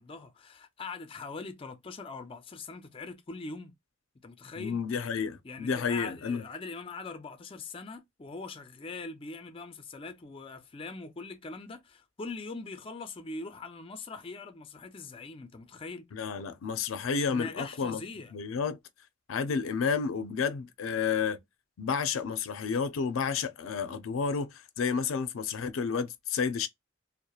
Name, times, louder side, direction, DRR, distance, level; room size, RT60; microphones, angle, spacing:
voice 1, 0.0-3.7 4.2-4.8 5.4-16.1 17.3-18.3, left 3 dB, 25° left, 0.4 m, -42 dB
voice 2, 4.6-6.4 16.1-18.0 18.3-18.8 19.3-21.4 21.8-26.7, left 6 dB, 85° left, 0.4 m, -31 dB
2.8 x 2.1 x 2.3 m
head